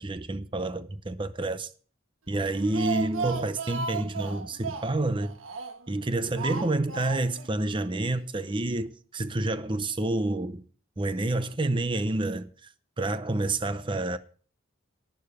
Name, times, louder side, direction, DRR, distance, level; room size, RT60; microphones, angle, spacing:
voice 1, 0.0-1.7 2.3-5.3 5.9-10.6 11.0-12.7 13.0-14.2, right 2 dB, 25° right, 0.6 m, -29 dB
Speech, 2.4-5.9 6.4-7.5 7.8-7.9 8.2-8.3, right 5 dB, 80° right, 1.3 m, -35 dB
11.5 x 10.5 x 4.9 m
head